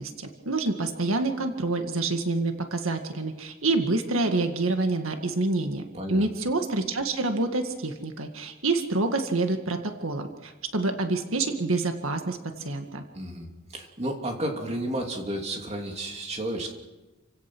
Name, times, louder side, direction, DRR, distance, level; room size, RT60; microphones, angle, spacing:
voice 1, 0.0-5.8 6.1-13.0, right 2 dB, 85° right, 5 dB, 1.9 m, -27 dB
voice 2, 5.9-6.3 13.1-16.7, right 1 dB, 30° right, 2 dB, 2.9 m, -32 dB
29.0 x 16.5 x 6.2 m, 1.1 s
head